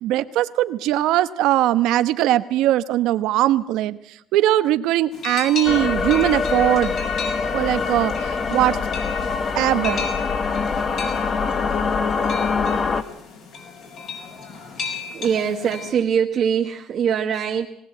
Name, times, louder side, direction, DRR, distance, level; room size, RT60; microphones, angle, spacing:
voice 1, 0.0-4.0 4.3-6.9 7.5-8.1 8.5-8.8 9.6-10.0, right 13 dB, 80° right, 12 dB, 0.9 m, -20 dB
sound 1, 5.1-15.9, left 5 dB, 65° left, 5.6 m, -35 dB
sound 2, 5.6-13.0, left 5 dB, 35° left, 1.2 m, -24 dB
voice 2, 15.1-17.7, right 7 dB, 55° right, 2 dB, 1.3 m, -22 dB
19.0 x 19.0 x 7.9 m, 0.74 s
cardioid pair, 115°, 0 cm